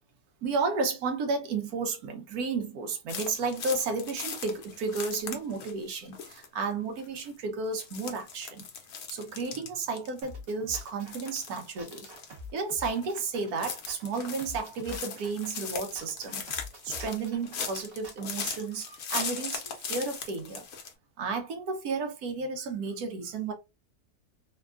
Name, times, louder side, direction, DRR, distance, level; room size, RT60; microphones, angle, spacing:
voice 1, 0.4-8.7 9.1-12.1 12.5-16.4 16.8-20.6 21.2-23.5, right 4 dB, 75° right, 1.2 m, -32 dB
sound 1, 3.1-5.8 6.1-6.5 7.0-7.3 7.7-10.5 10.7-12.4 12.8-13.2 13.5-20.9, left 6 dB, 65° left, 1.1 m, -39 dB
sound 2, 10.2-18.5, left 1 dB, 45° right, 0.9 m, -46 dB
3.3 x 2.3 x 2.3 m
omnidirectional pair, 1.6 m